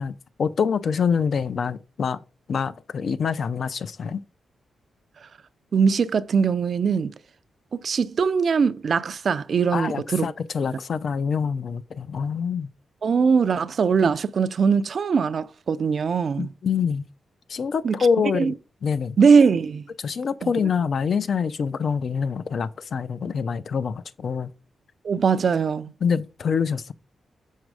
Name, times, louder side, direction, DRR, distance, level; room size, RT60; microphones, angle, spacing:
voice 1, 0.0-2.2 2.5-4.2 9.7-12.7 16.4-17.1 17.5-18.5 18.8-19.2 20.0-24.5 26.0-26.9, left 6 dB, 55° left, 0.4 m, -25 dB
voice 2, 5.7-7.1 7.7-10.3 13.0-16.5 17.8-18.1 18.3-18.5 19.2-19.8 20.4-20.5 25.0-25.9, right 5 dB, 50° right, 0.4 m, -21 dB
6.4 x 4.0 x 4.8 m
wide cardioid pair, 135°, 0 cm